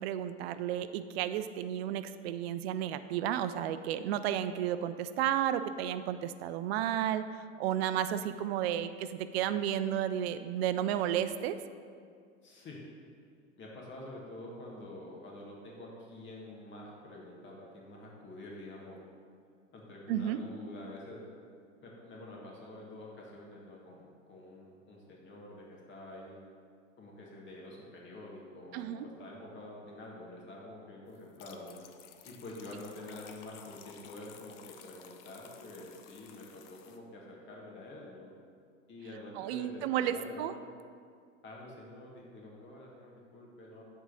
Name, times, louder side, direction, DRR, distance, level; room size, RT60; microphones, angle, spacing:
voice 1, 0.0-7.2 7.6-11.6 20.1-20.4 28.7-29.1 39.4-40.5, right 11 dB, 50° right, 11 dB, 0.5 m, -32 dB
voice 2, 12.4-12.8 13.6-19.0 19.7-21.2 21.8-26.4 27.0-31.8 32.2-38.3 38.9-40.7 41.4-43.8, left 1 dB, 30° left, -3 dB, 1.6 m, -47 dB
sound 1, 31.1-37.0, left 8 dB, 45° left, 0.7 m, -54 dB
8.0 x 3.7 x 6.2 m, 2.2 s
hypercardioid pair, 100°, 39 cm